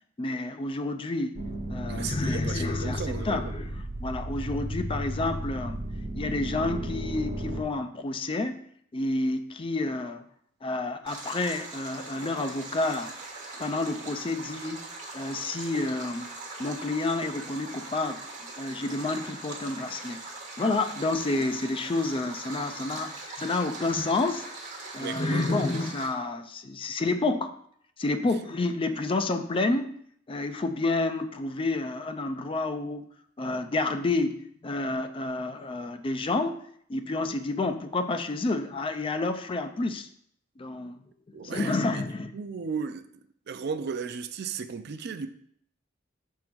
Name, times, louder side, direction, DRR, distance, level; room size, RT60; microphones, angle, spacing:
voice 1, 0.2-1.4 1.7-5.8 6.2-8.7 8.9-10.2 10.6-13.1 13.6-14.8 15.1-16.3 16.6-18.2 18.6-20.2 20.6-24.5 24.9-27.5 28.0-30.0 30.3-33.0 33.4-36.6 36.9-40.1 40.6-41.0 41.3-42.3, left 2 dB, 30° left, 0.4 m, -29 dB
sound 1, 1.3-7.6, equal, 75° right, 1.0 m, -34 dB
voice 2, 1.9-3.5 25.0-25.6 41.3-42.0 42.3-43.1 43.5-45.3, right 5 dB, 55° right, 0.4 m, -35 dB
Stream, 11.1-26.1, right 3 dB, 40° right, 1.4 m, -41 dB
6.1 x 3.7 x 4.5 m
head